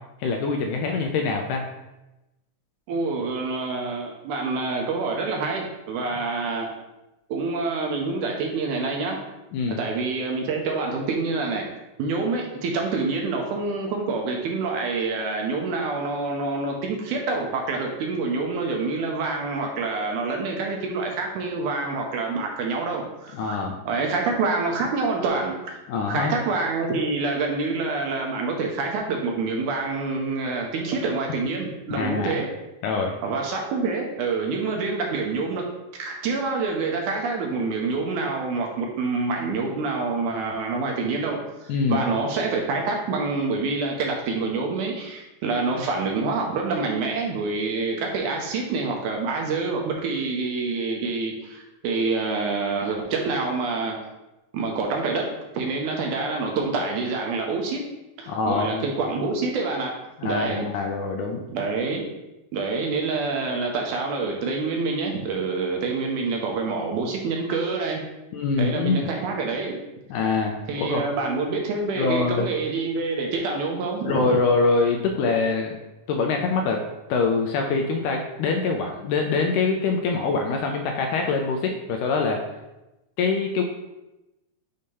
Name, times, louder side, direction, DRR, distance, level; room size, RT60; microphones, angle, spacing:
voice 1, 0.2-1.7 9.5-9.8 23.3-23.8 25.9-26.3 31.9-32.3 32.8-33.1 41.7-42.0 58.3-58.8 60.2-61.4 68.3-69.1 70.1-71.0 72.0-72.5 74.0-75.8 76.1-76.8 77.1-82.4 83.2-83.6, left 4 dB, 80° left, 3 dB, 1.9 m, -24 dB
voice 2, 2.9-6.7 7.3-9.2 9.7-11.7 12.0-23.6 23.9-25.8 26.1-32.5 33.2-35.7 36.0-54.0 54.5-57.8 58.2-59.9 60.2-60.7 61.5-62.0 62.5-68.0 68.6-69.8 70.7-74.4, right 3 dB, 75° right, 1 dB, 2.0 m, -27 dB
6.5 x 2.8 x 5.3 m, 0.99 s
omnidirectional pair, 3.9 m